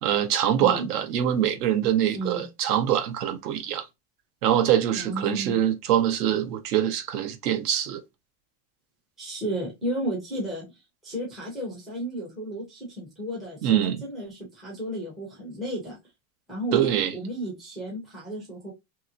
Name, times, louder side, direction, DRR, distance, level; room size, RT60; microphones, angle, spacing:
voice 1, 0.0-3.9 4.4-8.0 13.6-14.0 16.7-17.1, right 10 dB, 85° right, 0.8 m, -24 dB
voice 2, 5.0-5.6 9.2-10.6 11.0-16.0 16.5-18.7, right 1 dB, ahead, 0.3 m, -33 dB
2.9 x 2.9 x 2.4 m
supercardioid pair, 165°, 46 cm